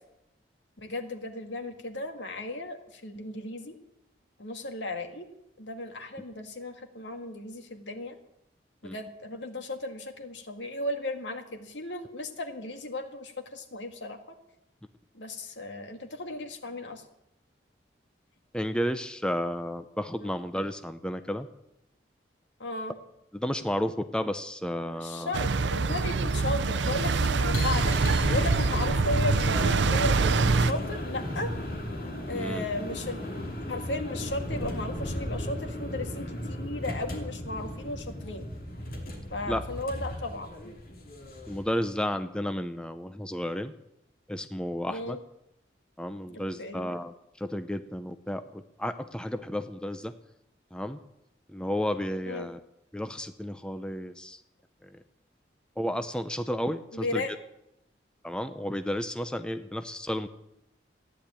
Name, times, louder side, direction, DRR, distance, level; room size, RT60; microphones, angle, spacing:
voice 1, 0.8-3.8 4.4-5.3 5.6-8.2 8.8-14.4 15.1-17.0 20.2-20.3 22.6-22.9 24.9-31.5 32.3-33.2 33.7-38.5 39.3-40.7 44.9-45.2 46.3-46.9 52.3-52.5 56.9-57.3, left 2 dB, 80° left, 6 dB, 1.9 m, -35 dB
voice 2, 18.5-21.5 23.3-25.3 32.3-32.6 39.5-39.6 41.5-43.7 44.3-45.2 46.0-50.1 50.7-51.0 51.5-52.6 52.9-54.4 54.8-55.0 55.8-57.4 58.2-60.3, equal, 5° left, 9 dB, 0.6 m, -32 dB
sound 1, 25.3-30.7, right 4 dB, 75° right, 0.6 m, -25 dB
sound 2, 27.3-41.7, equal, 50° left, 2.8 m, -34 dB
14.5 x 10.0 x 8.8 m, 0.83 s
head